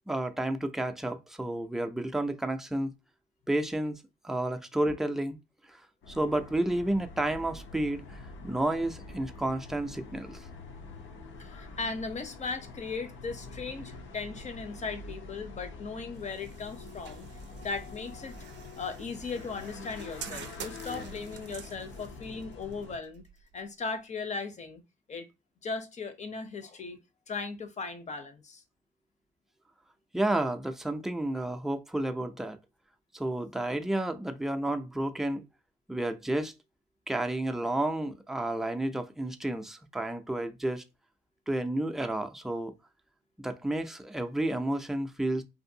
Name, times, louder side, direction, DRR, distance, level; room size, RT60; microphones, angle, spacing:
voice 1, 0.1-2.9 3.5-5.4 6.1-10.4 30.1-32.6 33.1-35.4 35.9-36.5 37.1-40.8 41.5-42.7 43.4-45.4, right 1 dB, ahead, 0.4 m, -31 dB
sound 1, 6.0-23.0, left 3 dB, 75° left, 0.7 m, -46 dB
voice 2, 11.4-17.3 17.6-18.4 18.8-23.2 23.5-24.8 25.1-25.3 25.6-27.0 27.3-28.6, left 4 dB, 35° left, 0.7 m, -37 dB
sound 2, 16.1-24.0, right 8 dB, 65° right, 0.4 m, -48 dB
2.6 x 2.5 x 2.7 m
cardioid pair, 90°, 20 cm